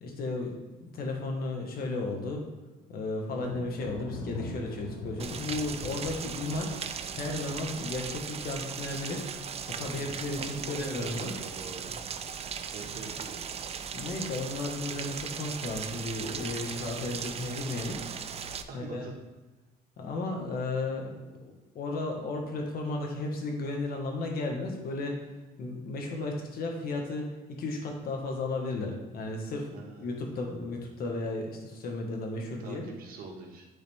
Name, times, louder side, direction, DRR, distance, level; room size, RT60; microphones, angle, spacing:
voice 1, 0.0-0.5 0.8-2.4 2.9-9.3 9.7-11.3 12.9-13.0 13.9-18.0 18.7-19.0 20.0-25.2 25.6-32.8, left 2 dB, 60° left, 1 dB, 1.6 m, -34 dB
Thunder, 3.4-9.9 10.2-10.8 11.2-12.1, left 3 dB, 85° left, 1.0 m, -44 dB
Rain, 5.2-18.6, right 7 dB, 35° right, 0.5 m, -38 dB
voice 2, 9.7-11.9 12.7-13.4 18.7-19.1 29.7-30.7 32.6-33.7, right 4 dB, 60° right, 0 dB, 1.6 m, -45 dB
10.0 x 4.0 x 3.5 m, 1.2 s
cardioid pair, 110°, 17 cm